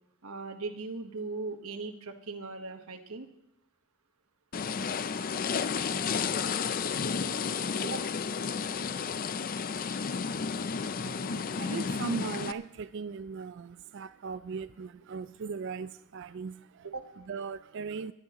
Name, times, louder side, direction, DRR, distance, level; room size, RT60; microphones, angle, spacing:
voice 1, 0.2-3.3 7.8-8.1 16.8-17.1, right 3 dB, 80° right, 1.3 m, -39 dB
sound 1, 4.5-12.5, left 6 dB, 40° left, 0.4 m, -32 dB
voice 2, 10.5-16.9 17.2-18.1, right 5 dB, 55° right, 0.3 m, -39 dB
21.0 x 12.0 x 3.0 m
head